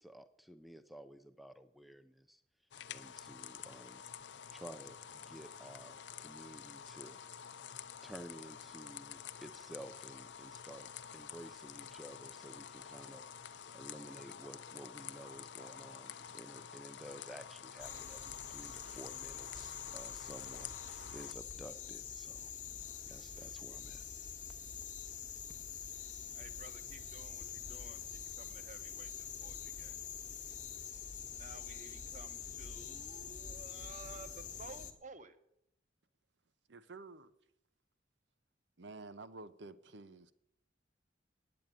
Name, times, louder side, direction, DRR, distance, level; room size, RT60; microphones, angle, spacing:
voice 1, 0.0-2.4 2.9-4.0 4.5-7.2 8.0-13.3 13.7-22.5 23.1-24.0, equal, ahead, 0.4 m, -53 dB
sound 1, 2.7-21.3, left 8 dB, 70° left, 0.5 m, -49 dB
sound 2, 17.8-34.9, left 7 dB, 40° left, 1.1 m, -46 dB
voice 2, 26.3-30.0 31.4-35.4, right 3 dB, 40° right, 0.9 m, -54 dB
voice 3, 36.7-37.3 38.8-40.3, right 3 dB, 70° right, 0.8 m, -50 dB
9.3 x 8.7 x 9.1 m
head